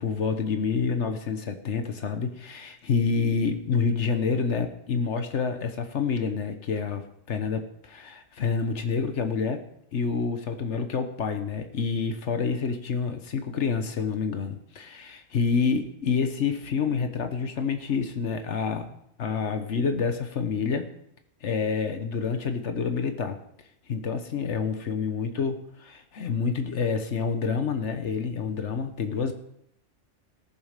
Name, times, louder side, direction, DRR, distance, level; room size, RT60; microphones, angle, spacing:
voice 1, 0.0-9.6 9.9-20.9 21.4-23.4 23.9-29.3, left 5 dB, 75° left, 7 dB, 1.3 m, -28 dB
17.5 x 7.3 x 5.1 m, 0.74 s
omnidirectional pair, 1.2 m